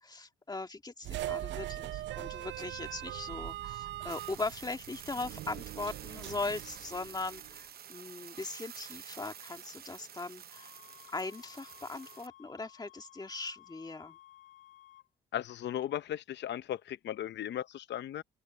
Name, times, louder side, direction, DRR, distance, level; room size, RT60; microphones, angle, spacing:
voice 1, 0.0-10.7 11.1-14.2, left 3 dB, 20° left, 2.0 m, -40 dB
sound 1, 1.0-7.6, right 14 dB, 65° right, 0.4 m, -41 dB
sound 2, 4.1-12.3, right 9 dB, 50° right, 0.8 m, -49 dB
sound 3, 10.5-15.1, left 14 dB, 80° left, 2.8 m, -57 dB
voice 2, 15.3-18.2, left 11 dB, 65° left, 0.7 m, -36 dB
open air
cardioid pair, 90°, 20 cm